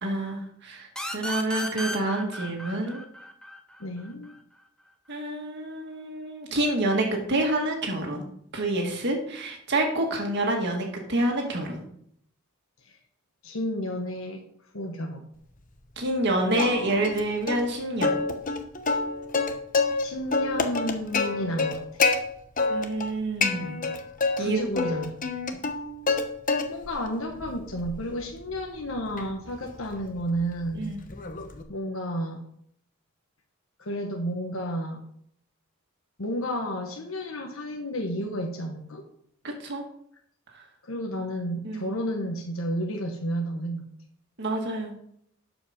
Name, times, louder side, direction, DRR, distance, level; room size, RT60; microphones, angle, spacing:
voice 1, 0.0-3.0 5.1-8.3 8.5-11.8 16.0-18.2 22.7-23.8 24.4-24.8 30.7-31.0 39.4-39.8 40.5-40.7 41.6-41.9 44.4-44.9, right 1 dB, 55° right, 1 dB, 1.8 m, -28 dB
Trap chop, 1.0-4.4, left 1 dB, 5° left, 1.0 m, -35 dB
voice 2, 3.8-4.3 12.9-13.0 13.4-14.4 14.7-15.2 20.0-21.8 24.4-25.2 26.7-30.9 31.7-32.4 33.8-35.0 36.2-39.1 40.8-43.8, equal, 70° left, 2 dB, 1.2 m, -31 dB
Plucked string instrument, 16.6-17.2 17.5-17.6 18.0-20.0 20.3-22.2 22.6-23.1 23.4-24.4 24.8-26.2 26.5-27.0 27.4-31.6, left 4 dB, 40° left, 0.9 m, -27 dB
12.5 x 5.2 x 5.1 m, 0.69 s
head